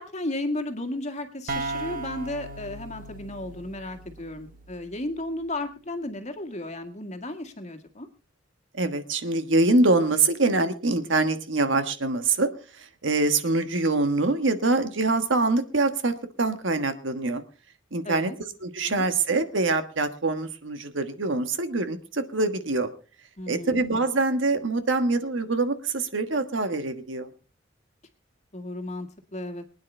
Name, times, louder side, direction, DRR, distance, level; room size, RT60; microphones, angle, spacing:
voice 1, 0.0-8.1 18.1-18.4 18.8-19.1 23.4-23.9 28.5-29.6, left 1 dB, 35° left, 6 dB, 1.8 m, -34 dB
sound 1, 1.5-5.1, right 2 dB, 45° right, 1.1 m, -37 dB
voice 2, 8.7-12.5 12.8-17.4 17.9-18.3 18.6-22.9 23.5-27.3, right 3 dB, 75° right, 9 dB, 1.4 m, -24 dB
24.0 x 9.6 x 3.3 m, 0.36 s
head